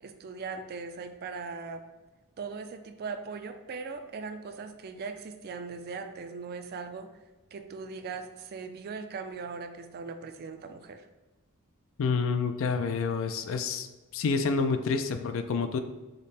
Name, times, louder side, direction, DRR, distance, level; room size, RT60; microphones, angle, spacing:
voice 1, 0.0-1.8 2.4-7.1 7.5-11.0, right 4 dB, 45° right, 7 dB, 0.4 m, -39 dB
voice 2, 12.0-13.9 14.1-15.8, left 4 dB, 65° left, 9 dB, 0.4 m, -28 dB
5.2 x 2.1 x 4.1 m, 1.2 s
head